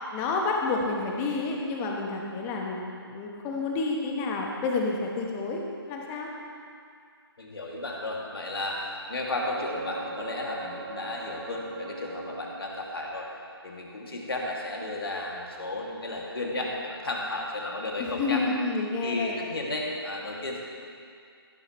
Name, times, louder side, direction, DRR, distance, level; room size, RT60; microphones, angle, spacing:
voice 1, 0.1-6.3 18.0-19.4, left 3 dB, 15° left, 0 dB, 1.2 m, -29 dB
voice 2, 7.4-13.2 13.6-18.4 19.0-20.6, left 2 dB, 65° left, -2 dB, 2.4 m, -33 dB
sound 1, 9.3-13.1 16.7-16.8, right 3 dB, 40° right, 0.9 m, -41 dB
15.5 x 11.5 x 3.1 m, 2.3 s
figure-of-eight pair, 140°, 13 cm